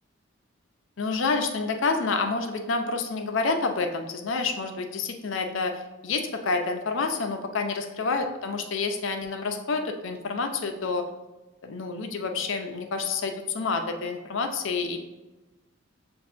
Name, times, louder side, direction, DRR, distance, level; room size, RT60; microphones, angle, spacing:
voice 1, 1.0-11.1 11.6-15.0, left 4 dB, 70° left, 5 dB, 0.5 m, -28 dB
7.0 x 2.6 x 2.4 m, 1.1 s
head